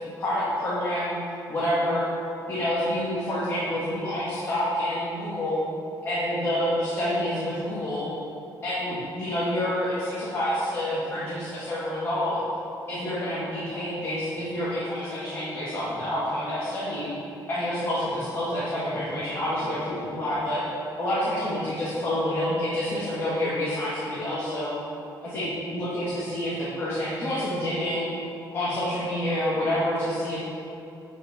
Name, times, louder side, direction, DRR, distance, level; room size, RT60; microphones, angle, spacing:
voice 1, 0.2-1.1 1.5-2.1 2.5-5.7 6.0-8.1 8.6-12.4 12.9-17.1 17.5-20.6 21.0-24.7 25.2-28.1 28.5-30.4, left 1 dB, 35° left, -10 dB, 2.5 m, -28 dB
16.5 x 5.9 x 4.0 m, 2.7 s
cardioid pair, 130°, 8 cm